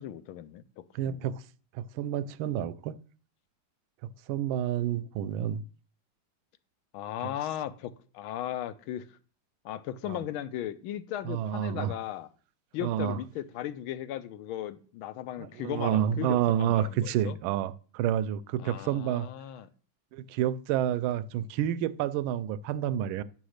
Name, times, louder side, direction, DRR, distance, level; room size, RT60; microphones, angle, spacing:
voice 1, 0.0-1.3 6.9-9.1 9.6-12.3 12.7-17.4 18.6-19.7, left 11 dB, 80° left, 1.5 m, -37 dB
voice 2, 0.9-1.4 1.7-3.0 4.3-5.6 10.1-10.2 11.2-11.9 12.8-13.2 15.4-19.3 20.1-23.2, right 10 dB, 80° right, 1.3 m, -29 dB
11.0 x 4.1 x 6.4 m
omnidirectional pair, 2.3 m